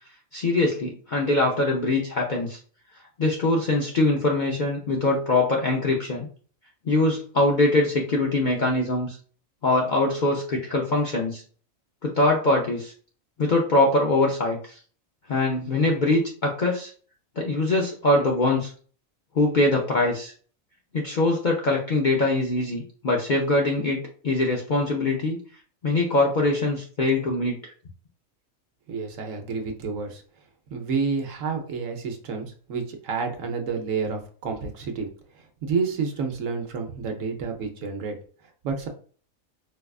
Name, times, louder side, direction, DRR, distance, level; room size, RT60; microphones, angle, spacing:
voice 1, 0.3-2.6 3.2-6.3 6.9-9.2 9.6-11.4 12.0-12.9 13.4-14.8 15.3-16.9 17.4-18.7 19.3-20.3 20.9-25.4 25.8-27.7, left 2 dB, 55° left, -1 dB, 0.5 m, -23 dB
voice 2, 28.9-30.2 30.7-35.1 35.3-38.2 38.6-38.9, right 5 dB, 70° right, 4 dB, 1.1 m, -29 dB
4.6 x 2.3 x 2.3 m, 0.42 s
omnidirectional pair, 1.4 m